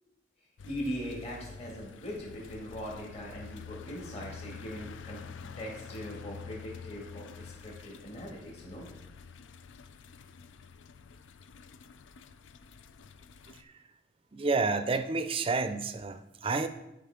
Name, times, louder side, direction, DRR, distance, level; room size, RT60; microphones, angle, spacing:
sound 1, 0.6-13.6, left 5 dB, 85° left, 0.4 m, -48 dB
voice 1, 0.7-8.9, equal, 35° left, -3 dB, 2.0 m, -40 dB
voice 2, 14.3-16.7, right 3 dB, 30° right, 10 dB, 0.4 m, -30 dB
12.0 x 5.1 x 3.6 m, 0.92 s
head